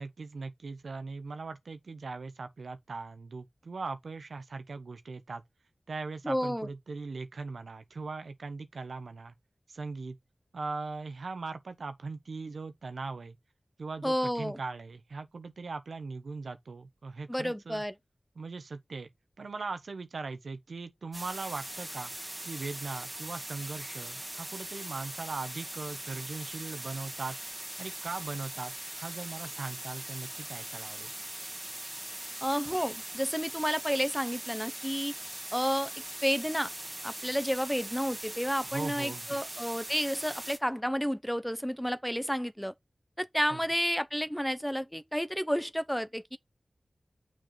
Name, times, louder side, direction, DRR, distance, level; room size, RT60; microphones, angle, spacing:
voice 1, 0.0-5.4 5.9-9.3 9.7-10.2 10.5-13.4 13.8-17.8 18.3-19.1 19.4-22.1 22.4-27.4 27.8-31.1 38.6-39.4 43.5-43.6, right 4 dB, 90° right, 1.0 m, -39 dB
voice 2, 6.2-6.7 14.0-14.6 17.3-17.9 32.4-35.1 35.5-35.9 36.2-36.7 37.0-42.7 43.2-46.4, equal, 5° left, 0.7 m, -31 dB
sound 1, 21.1-40.6, right 1 dB, 20° right, 1.8 m, -41 dB
6.5 x 4.9 x 3.9 m
wide cardioid pair, 70°, 0 cm